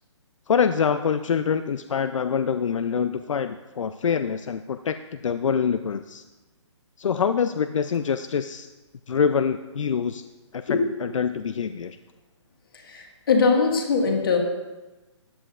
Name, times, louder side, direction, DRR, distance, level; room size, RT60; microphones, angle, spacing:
voice 1, 0.5-6.2 7.0-8.7 9.1-10.2 10.5-12.0, left 6 dB, 80° left, 10 dB, 0.5 m, -25 dB
voice 2, 12.8-14.4, left 4 dB, 45° left, 2 dB, 1.8 m, -21 dB
14.5 x 10.5 x 2.5 m, 1.1 s
hypercardioid pair, 170°, 16 cm